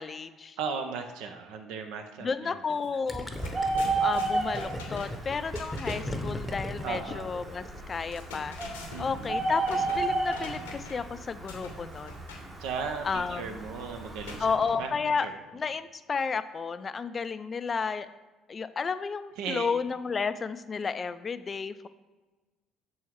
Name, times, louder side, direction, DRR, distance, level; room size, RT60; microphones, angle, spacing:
voice 1, 0.0-0.6 2.2-3.3 4.0-8.6 9.0-12.2 13.0-13.5 14.4-15.3 15.5-18.1 18.5-21.9, left 5 dB, 35° left, 13 dB, 0.3 m, -32 dB
voice 2, 0.6-2.6 2.9-3.0 4.3-4.5 6.8-7.3 8.9-9.3 12.6-14.9 15.2-15.3 19.4-19.7, right 5 dB, 70° right, 5 dB, 0.5 m, -36 dB
sound 1, 2.7-2.9 3.1-6.2 7.9-11.1 11.5-12.5 14.2-15.2, left 2 dB, 85° left, 0.9 m, -44 dB
Gurgling, 3.1-7.8, left 1 dB, 10° left, 0.8 m, -36 dB
Bird, 3.4-14.6, right 3 dB, 30° right, 1.2 m, -34 dB
6.1 x 4.4 x 3.6 m, 1.2 s
hypercardioid pair, 55°, 0 cm